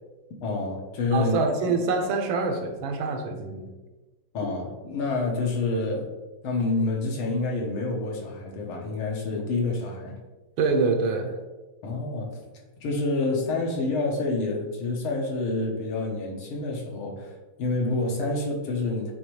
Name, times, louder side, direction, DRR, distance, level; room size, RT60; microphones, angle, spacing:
voice 1, 0.4-1.4 4.3-6.1 6.4-10.2 11.8-12.4 12.8-19.1, left 3 dB, 90° left, 0 dB, 2.0 m, -28 dB
voice 2, 1.1-3.7 10.6-11.3, right 4 dB, 75° right, 4 dB, 1.5 m, -25 dB
8.4 x 3.5 x 3.2 m, 1.2 s
omnidirectional pair, 2.3 m